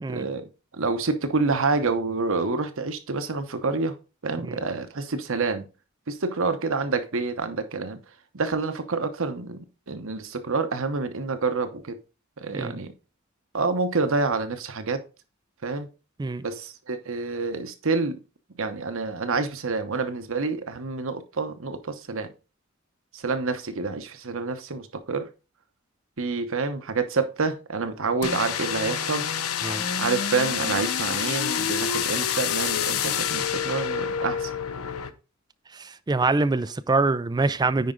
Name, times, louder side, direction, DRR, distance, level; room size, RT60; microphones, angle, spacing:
voice 1, 0.1-4.0 4.2-5.6 6.1-8.0 8.3-12.0 12.4-12.9 13.5-15.0 15.6-15.9 16.4-18.2 18.6-22.3 23.1-25.3 26.2-29.3 30.0-34.5, right 4 dB, 65° right, 1.0 m, -28 dB
sound 1, 28.2-35.1, left 8 dB, 80° left, 0.7 m, -27 dB
voice 2, 35.7-37.9, right 3 dB, 20° right, 0.3 m, -25 dB
9.5 x 4.9 x 3.8 m
head